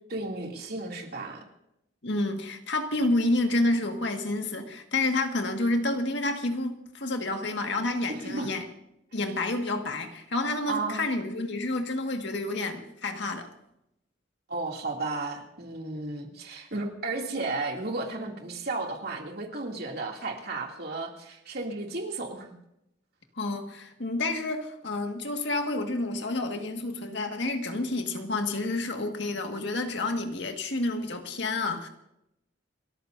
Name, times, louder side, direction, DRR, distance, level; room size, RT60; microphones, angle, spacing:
voice 1, 0.1-1.4 8.1-8.5 10.7-11.0 14.5-22.5, right 3 dB, 55° right, 1 dB, 2.8 m, -33 dB
voice 2, 2.0-8.7 9.1-13.5 23.4-31.9, left 2 dB, 60° left, 4 dB, 1.9 m, -29 dB
29.5 x 14.0 x 2.7 m, 0.81 s
head